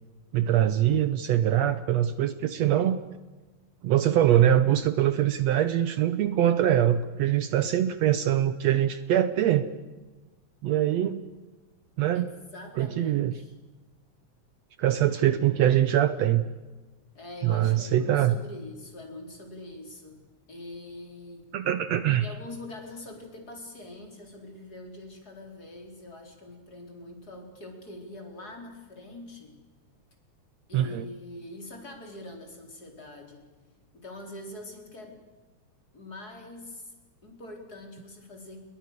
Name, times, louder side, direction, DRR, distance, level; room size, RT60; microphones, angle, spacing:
voice 1, 0.3-3.0 3.8-9.7 10.6-11.2 12.0-12.3 12.8-13.3 14.8-16.5 17.4-18.4 21.5-22.3 30.7-31.1, right 11 dB, 70° right, 12 dB, 2.0 m, -23 dB
voice 2, 12.1-13.5 17.1-21.5 22.2-29.6 30.7-33.5 33.9-35.2 35.9-36.9 37.2-38.7, left 1 dB, 30° left, 3 dB, 4.9 m, -44 dB
29.5 x 22.0 x 6.7 m, 1.2 s
omnidirectional pair, 3.4 m